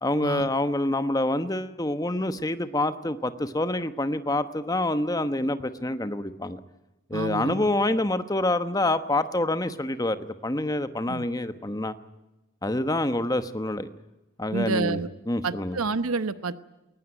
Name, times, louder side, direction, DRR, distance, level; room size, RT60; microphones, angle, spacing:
voice 1, 0.0-6.6 7.1-11.9 12.6-13.9 14.4-15.0 15.3-15.8, left 1 dB, 15° left, 10 dB, 1.1 m, -27 dB
voice 2, 7.1-7.7 11.1-11.3 14.5-15.1 15.4-16.6, right 4 dB, 85° right, 13 dB, 0.9 m, -29 dB
21.5 x 19.5 x 9.1 m, 0.99 s
head